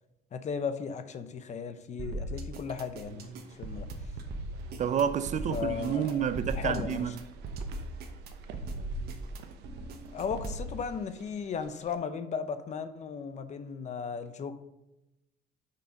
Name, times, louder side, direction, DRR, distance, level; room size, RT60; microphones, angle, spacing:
voice 1, 0.3-3.3 3.5-3.9 5.5-6.2 6.5-7.1 10.1-14.6, left 6 dB, 45° left, 0.8 m, -36 dB
sound 1, 2.0-10.7, right 2 dB, 70° right, 1.1 m, -39 dB
sound 2, 3.0-11.9, right 2 dB, 90° right, 0.8 m, -47 dB
voice 2, 4.8-7.2, right 8 dB, 45° right, 0.5 m, -29 dB
6.3 x 5.7 x 5.1 m
cardioid pair, 110°, 17 cm